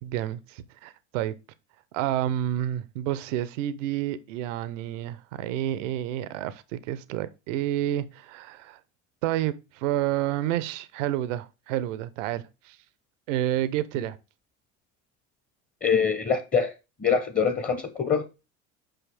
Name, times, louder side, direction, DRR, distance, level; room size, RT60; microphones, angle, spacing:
voice 1, 0.0-1.3 1.9-8.8 9.2-12.8 13.3-14.2, right 12 dB, 75° right, 0.8 m, -29 dB
voice 2, 15.8-16.7 17.0-18.2, left 6 dB, 20° left, 1.0 m, -24 dB
5.7 x 5.6 x 3.4 m
hypercardioid pair, 80°, 38 cm